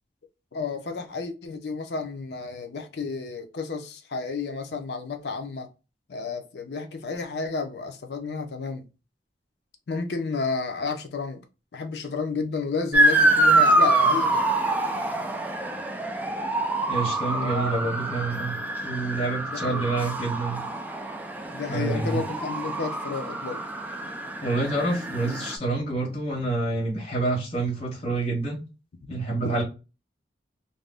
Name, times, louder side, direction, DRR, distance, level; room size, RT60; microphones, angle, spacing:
voice 1, 0.5-5.7 6.1-8.8 9.9-11.4 11.7-14.5 17.3-17.8 19.5-19.9 21.5-23.7 29.4-29.5, left 4 dB, 70° left, 0.5 m, -31 dB
Motor vehicle (road) / Siren, 12.9-25.6, right 2 dB, 10° right, 0.3 m, -25 dB
voice 2, 16.9-18.6 18.8-20.6 21.7-22.2 24.4-28.6 29.1-29.6, right 2 dB, 35° left, 0.9 m, -27 dB
2.6 x 2.0 x 3.3 m
head